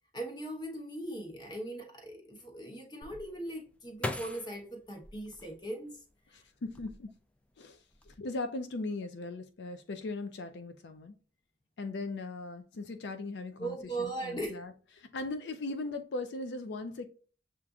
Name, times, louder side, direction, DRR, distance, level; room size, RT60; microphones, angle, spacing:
voice 1, 0.1-5.9 13.6-14.6, right 2 dB, 25° left, 1.0 m, -39 dB
sound 1, 3.0-6.1 6.6-7.4 7.7-8.2, left 1 dB, 5° left, 0.3 m, -41 dB
voice 2, 6.3-7.1 7.6-11.1 11.8-17.1, left 2 dB, 80° left, 0.4 m, -39 dB
6.9 x 2.5 x 2.3 m
head